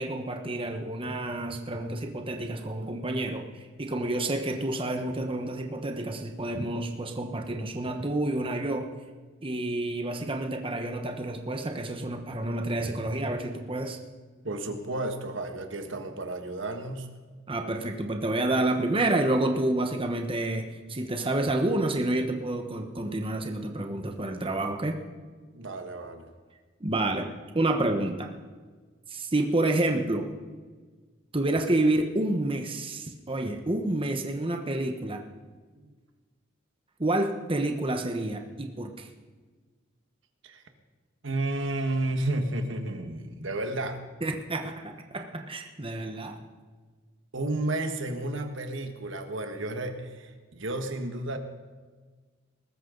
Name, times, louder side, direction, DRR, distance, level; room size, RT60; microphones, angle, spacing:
voice 1, 0.0-8.9 9.4-14.0 17.5-25.0 26.8-27.3 27.5-28.3 29.1-30.3 31.3-35.2 37.0-39.1 44.2-46.4, right 2 dB, 25° right, 4 dB, 1.2 m, -29 dB
voice 2, 14.4-17.1 25.5-26.3 35.8-35.9 40.4-40.6 41.2-44.0 47.3-51.4, right 2 dB, 70° right, 6 dB, 1.6 m, -32 dB
21.0 x 13.5 x 4.0 m, 1.4 s
head